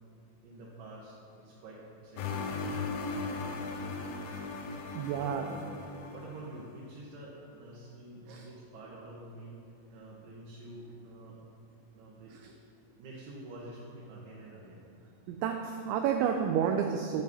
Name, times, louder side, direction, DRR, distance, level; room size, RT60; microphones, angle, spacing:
voice 1, 0.4-2.4 4.9-5.6 6.1-9.6 9.9-11.5 11.9-12.5 13.0-14.8, right 1 dB, 70° right, -7 dB, 3.6 m, -47 dB
sound 1, 2.2-6.6, left 4 dB, 80° left, 3.1 m, -37 dB
voice 2, 4.9-5.5 8.3-8.5 12.3-12.5 15.3-17.2, right 8 dB, 90° right, 4 dB, 2.6 m, -30 dB
12.0 x 7.0 x 5.4 m, 2.5 s
omnidirectional pair, 5.9 m